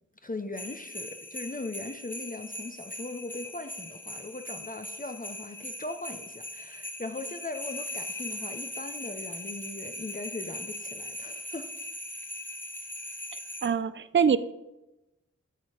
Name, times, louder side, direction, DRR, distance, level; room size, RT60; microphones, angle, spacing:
voice 1, 0.2-11.7, left 2 dB, 30° left, 8 dB, 0.7 m, -39 dB
sound 1, 0.5-13.7, left 1 dB, 5° left, 1.1 m, -40 dB
voice 2, 13.6-14.4, right 7 dB, 40° right, 15 dB, 0.5 m, -23 dB
10.0 x 6.3 x 4.9 m, 0.96 s
wide cardioid pair, 55°, 30 cm